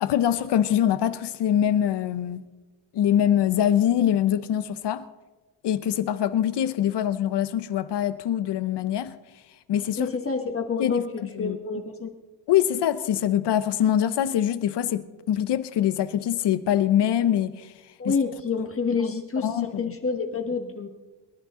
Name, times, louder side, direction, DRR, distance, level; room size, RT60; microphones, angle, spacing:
voice 1, 0.0-2.5 2.9-5.0 5.6-9.1 9.7-10.1 10.8-11.6 12.5-17.7 18.0-18.2 19.0-19.1 19.4-19.9, left 10 dB, 70° left, 0.9 m, -24 dB
voice 2, 10.0-11.1 11.4-12.1 18.0-20.9, left 5 dB, 30° left, 1.3 m, -28 dB
23.0 x 11.0 x 3.8 m
cardioid pair, 140°, 43 cm